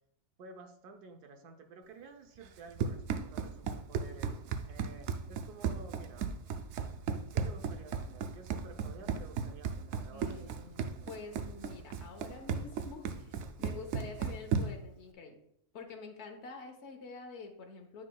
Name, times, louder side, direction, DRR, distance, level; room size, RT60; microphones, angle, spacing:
voice 1, 0.4-6.3 7.3-10.5 11.0-11.3, right 4 dB, 90° right, 5 dB, 1.3 m, -52 dB
Run, 2.4-14.9, right 6 dB, 70° right, 0.7 m, -36 dB
voice 2, 10.1-15.4 15.7-18.0, left 4 dB, 50° left, 4 dB, 1.2 m, -47 dB
9.3 x 5.6 x 2.3 m, 0.75 s
omnidirectional pair, 1.6 m